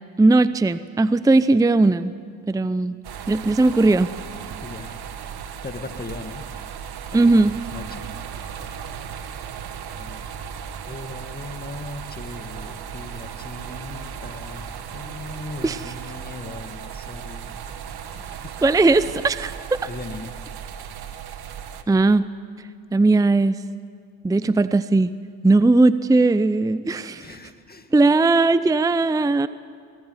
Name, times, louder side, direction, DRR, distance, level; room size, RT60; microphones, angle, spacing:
voice 1, 0.2-2.1 2.5-2.9 3.3-4.1 7.1-7.5 15.6-15.8 18.6-19.8 21.9-22.2 22.9-23.6 24.2-25.1 25.4-27.3 27.9-29.5, right 2 dB, 10° right, 14 dB, 0.6 m, -18 dB
sound 1, 3.0-21.8, right 8 dB, 60° right, 1.7 m, -36 dB
voice 2, 4.6-5.0 5.6-6.4 7.1-7.5 7.7-8.1 9.9-10.3 10.9-18.6 19.9-20.3 27.2-27.9, left 2 dB, 20° left, 7 dB, 2.1 m, -38 dB
21.5 x 19.0 x 9.6 m, 2.1 s
supercardioid pair, 70°, 44 cm